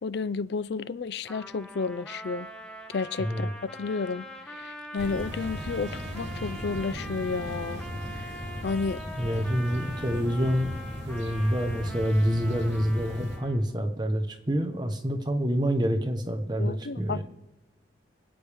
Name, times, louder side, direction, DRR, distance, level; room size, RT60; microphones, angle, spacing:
voice 1, 0.0-2.5 2.9-8.3 8.6-9.0 16.6-17.2, left 4 dB, 60° left, 0.4 m, -32 dB
Trumpet, 1.3-13.7, equal, 5° left, 1.0 m, -43 dB
voice 2, 3.2-3.5 9.2-10.7 11.0-17.2, equal, 25° right, 1.0 m, -27 dB
sound 1, 5.0-13.4, equal, 75° right, 2.8 m, -37 dB
25.0 x 8.5 x 3.5 m
head